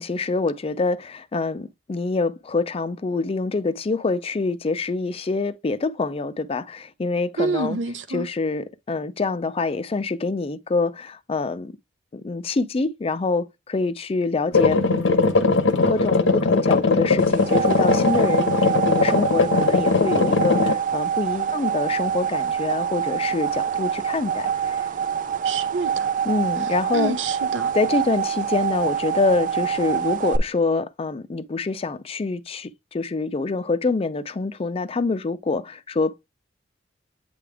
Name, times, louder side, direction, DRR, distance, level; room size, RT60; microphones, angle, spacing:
voice 1, 0.0-7.8 8.1-11.7 12.1-15.3 15.9-24.8 26.2-27.2 27.7-36.2, left 3 dB, 30° left, 0.4 m, -26 dB
voice 2, 7.4-8.3 25.4-26.1 26.9-27.7, right 4 dB, 75° right, 0.8 m, -27 dB
sound 1, 14.5-20.7, left 3 dB, 85° left, 1.0 m, -20 dB
sound 2, 17.2-30.4, right 8 dB, 45° right, 0.4 m, -26 dB
8.5 x 3.4 x 3.4 m
head